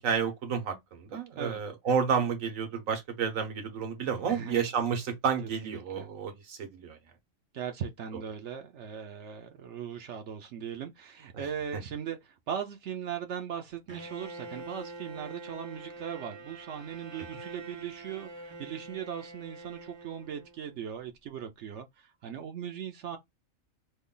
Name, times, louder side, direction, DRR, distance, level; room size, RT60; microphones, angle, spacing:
voice 1, 0.0-7.0 11.3-11.4 11.7-11.8 17.3-17.4, right 6 dB, 85° right, 1.4 m, -31 dB
voice 2, 4.3-4.7 5.6-6.1 7.5-18.3 18.6-23.2, right 8 dB, 65° right, 0.8 m, -39 dB
Bowed string instrument, 13.9-20.8, right 2 dB, 45° right, 0.3 m, -45 dB
3.2 x 2.3 x 3.7 m
omnidirectional pair, 1.4 m